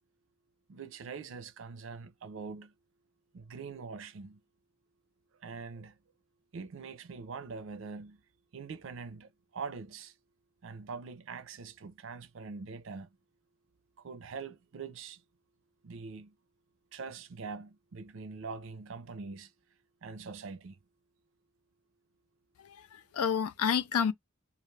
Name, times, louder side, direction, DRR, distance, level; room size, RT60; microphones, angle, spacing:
voice 1, 0.7-2.7 3.3-4.4 5.4-6.0 6.5-8.2 8.5-10.1 10.6-13.1 14.0-15.2 15.8-16.4 16.9-19.5 20.0-20.8, right 5 dB, 60° right, 0.5 m, -43 dB
voice 2, 22.6-24.1, left 7 dB, 85° left, 0.4 m, -30 dB
2.4 x 2.3 x 3.2 m
head